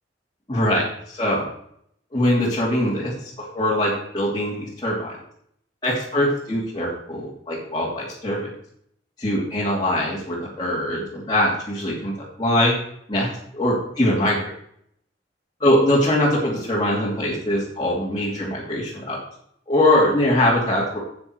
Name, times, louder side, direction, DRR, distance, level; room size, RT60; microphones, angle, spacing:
voice 1, 0.5-0.8 1.1-1.5 2.1-5.1 5.8-8.5 9.2-12.1 12.4-12.7 13.1-13.3 13.5-14.5 15.6-19.2 19.7-21.0, left 1 dB, 25° left, -7 dB, 2.8 m, -22 dB
9.9 x 8.7 x 4.6 m, 0.70 s
head